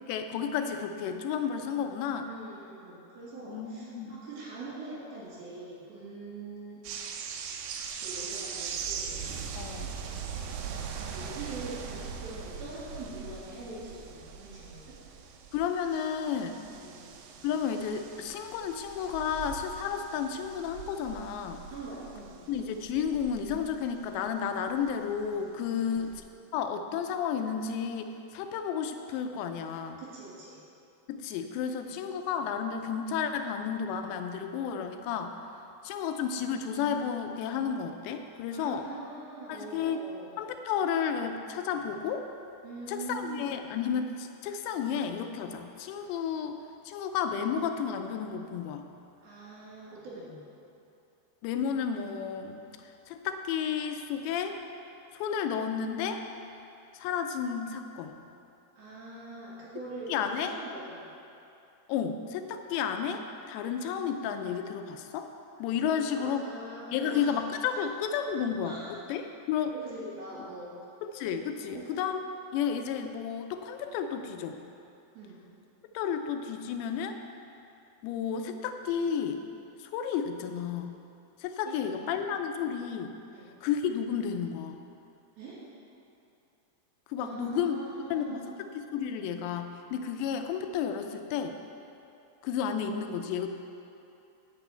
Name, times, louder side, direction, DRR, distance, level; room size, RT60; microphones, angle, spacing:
voice 1, 0.0-2.3 3.5-4.2 9.6-10.0 15.5-16.6 17.4-21.6 22.5-26.1 26.5-30.0 31.1-35.4 35.8-38.8 39.5-40.0 40.4-42.3 42.9-46.6 46.9-48.9 51.4-54.6 55.1-56.2 56.9-58.2 60.1-60.5 61.9-65.3 65.6-66.4 66.9-68.8 69.1-69.7 71.1-72.2 72.5-74.6 75.9-77.2 78.0-79.4 79.8-81.0 81.4-83.1 83.6-84.8 87.1-87.8 88.1-88.4 88.9-91.6 92.4-93.5, left 7 dB, 85° left, 6 dB, 2.9 m, -32 dB
voice 2, 2.2-6.8 7.9-9.2 10.9-14.9 16.6-17.1 21.7-22.4 25.7-26.1 30.0-30.6 31.8-32.0 38.5-40.3 42.6-43.6 49.2-50.4 58.8-61.0 65.9-67.3 67.7-67.9 68.6-69.0 69.7-70.8 71.6-71.9 75.1-75.4 81.7-82.3 83.3-83.5 85.4-85.6 87.2-88.5, right 2 dB, 60° right, -8 dB, 4.5 m, -43 dB
sound 1, 6.8-25.4 25.8-26.2, right 6 dB, 85° right, 2.0 m, -41 dB
9.0 x 5.8 x 8.2 m, 2.7 s
omnidirectional pair, 5.0 m